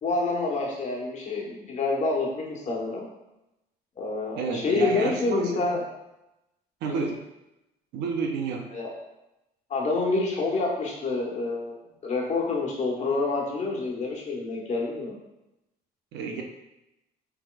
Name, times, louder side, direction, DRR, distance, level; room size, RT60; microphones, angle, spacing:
voice 1, 0.0-3.1 4.0-5.8 6.8-7.1 8.7-8.9 9.7-15.2, left 3 dB, 45° left, -2 dB, 1.4 m, -28 dB
voice 2, 4.3-5.8 6.8-7.2 7.9-8.7 16.1-16.4, right 4 dB, 85° right, 1 dB, 0.8 m, -30 dB
6.0 x 3.6 x 2.4 m, 0.91 s
cardioid pair, 110°, 17 cm